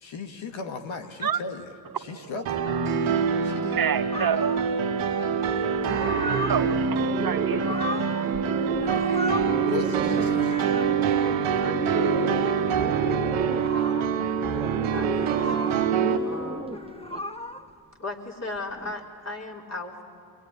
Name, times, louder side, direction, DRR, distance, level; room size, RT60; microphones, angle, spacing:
voice 1, 0.0-2.6 3.4-3.9 9.6-10.8, left 4 dB, 70° left, 1.7 m, -36 dB
sound 1, 2.5-16.2, right 6 dB, 90° right, 1.7 m, -25 dB
voice 2, 3.8-4.6 6.5-7.6, right 7 dB, 45° right, 1.0 m, -28 dB
sound 2, 4.1-4.7 5.8-6.7 7.3-8.5 8.7-9.5 10.0-10.9 11.5-11.8 13.3-14.1 15.1-15.9 16.6-17.7 18.6-18.9, left 1 dB, 10° left, 1.5 m, -35 dB
Bird, 5.6-17.2, right 2 dB, 10° right, 0.9 m, -36 dB
voice 3, 14.5-15.8 16.2-16.8 18.0-20.0, left 2 dB, 30° left, 4.3 m, -37 dB
25.0 x 23.0 x 9.9 m
supercardioid pair, 60°, 48 cm